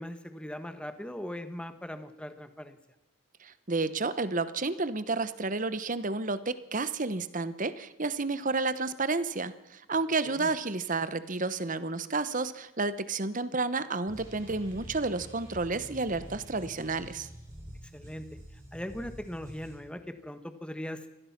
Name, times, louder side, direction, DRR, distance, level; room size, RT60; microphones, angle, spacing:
voice 1, 0.0-2.8 10.2-10.5 17.9-18.2 18.7-21.1, left 1 dB, 5° left, 10 dB, 1.4 m, -40 dB
voice 2, 3.4-17.3, right 3 dB, 40° right, 14 dB, 1.1 m, -31 dB
sound 1, 14.1-19.8, equal, 15° right, 7.1 m, -47 dB
24.5 x 18.0 x 6.0 m, 0.98 s
head